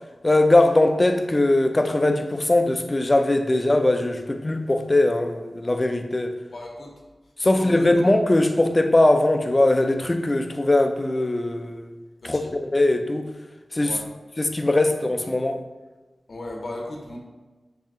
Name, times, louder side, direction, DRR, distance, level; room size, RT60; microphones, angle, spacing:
voice 1, 0.2-6.4 7.4-11.9 12.2-13.3 13.7-14.0 14.4-15.6, left 2 dB, 30° left, 7 dB, 0.4 m, -20 dB
voice 2, 6.5-6.9 7.5-8.1 12.2-12.5 13.8-14.1 16.3-17.2, left 1 dB, 70° left, 0 dB, 0.6 m, -36 dB
3.2 x 2.8 x 3.6 m, 1.2 s
wide cardioid pair, 60°, 0 cm